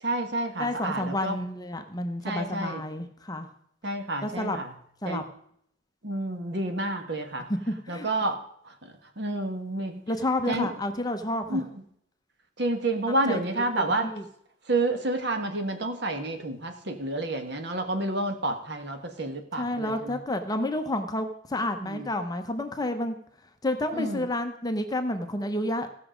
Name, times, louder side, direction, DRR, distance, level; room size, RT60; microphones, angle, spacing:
voice 1, 0.0-1.3 2.2-2.8 3.8-4.7 5.0-5.2 6.0-7.5 7.9-8.4 8.6-10.0 10.5-10.7 11.5-11.7 12.6-14.1 14.7-20.2 21.8-22.1 23.9-24.3, right 2 dB, 60° right, 6 dB, 1.4 m, -29 dB
voice 2, 0.6-3.5 4.2-4.6 5.0-5.2 7.5-8.1 10.1-11.6 13.3-14.2 19.6-23.2 23.6-25.9, left 1 dB, 20° left, 6 dB, 0.8 m, -30 dB
16.0 x 6.0 x 5.1 m, 0.69 s
head